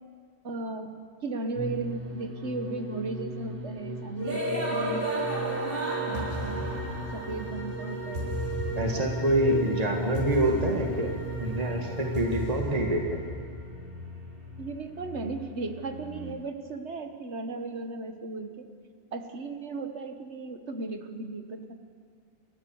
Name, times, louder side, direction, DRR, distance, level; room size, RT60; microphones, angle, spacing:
voice 1, 0.4-0.9 1.2-5.6 6.1-6.6 7.1-8.4 14.6-18.7 19.1-21.7, right 3 dB, 75° right, 6 dB, 1.7 m, -36 dB
sound 1, 1.5-16.3, right 1 dB, 55° right, 3.1 m, -33 dB
voice 2, 8.8-11.1 11.4-13.2, right 1 dB, 35° right, 1 dB, 2.0 m, -26 dB
29.5 x 13.5 x 7.1 m, 2.2 s
omnidirectional pair, 1.2 m